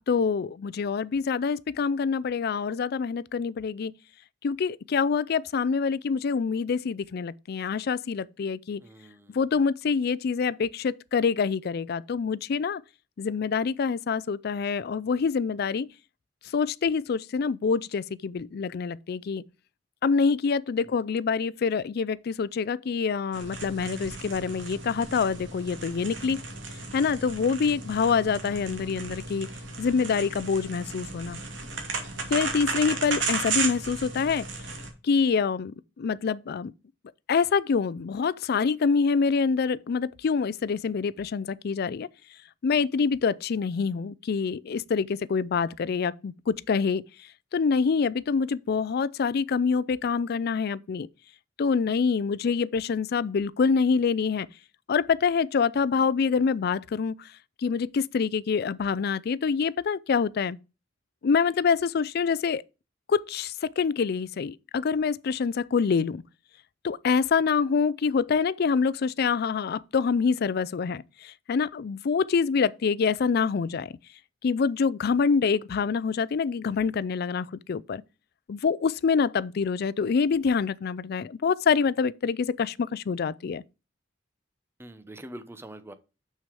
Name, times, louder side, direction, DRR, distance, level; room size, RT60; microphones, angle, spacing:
voice 1, 0.1-3.9 4.4-8.8 9.3-12.8 13.2-15.9 16.5-19.4 20.0-26.4 26.9-29.5 29.8-31.4 32.3-34.5 35.0-36.7 37.3-42.1 42.6-47.0 47.5-51.1 51.6-54.5 54.9-57.3 57.6-60.6 61.2-62.6 63.1-66.2 66.8-73.9 74.4-78.0 78.5-83.6, left 5 dB, 55° left, 0.4 m, -26 dB
voice 2, 8.8-9.4 20.8-20.9 84.8-85.9, right 1 dB, 15° right, 0.8 m, -44 dB
sound 1, 23.3-34.9, right 4 dB, 75° right, 2.5 m, -34 dB
6.8 x 6.3 x 4.7 m
head